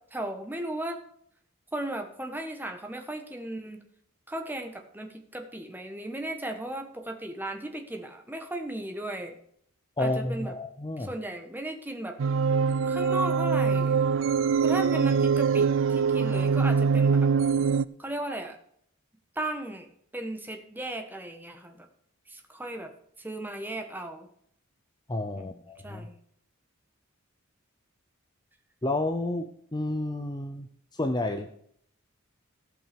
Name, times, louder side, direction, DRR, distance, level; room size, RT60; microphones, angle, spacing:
voice 1, 0.1-1.0 1.7-3.8 4.3-9.4 10.0-10.5 11.0-12.2 12.8-14.0 14.6-17.3 18.0-18.6 19.3-21.9 22.3-22.9 23.2-24.3 25.3-25.6 25.8-26.2, right 1 dB, 10° right, 5 dB, 1.3 m, -36 dB
voice 2, 10.0-11.1 25.1-26.1 28.8-30.7 30.9-31.5, left 2 dB, 20° left, 6 dB, 0.6 m, -30 dB
sound 1, 12.2-17.9, right 5 dB, 60° right, 0.4 m, -23 dB
15.5 x 5.6 x 5.2 m, 0.66 s
head